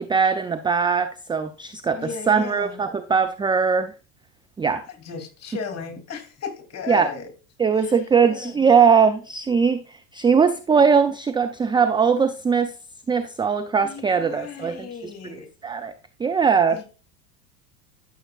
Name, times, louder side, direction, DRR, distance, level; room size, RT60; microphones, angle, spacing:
voice 1, 0.0-3.9 4.6-4.8 6.9-7.1 7.6-12.7 13.1-14.9 15.2-15.4 15.6-15.9 16.2-16.8, right 6 dB, 10° right, 0.4 m, -20 dB
voice 2, 1.9-2.8 4.9-7.3 7.8-8.0 8.3-8.7 13.8-15.5 16.7-16.8, left 6 dB, 35° left, 2.8 m, -36 dB
13.0 x 6.9 x 2.3 m
hypercardioid pair, 85°, 46 cm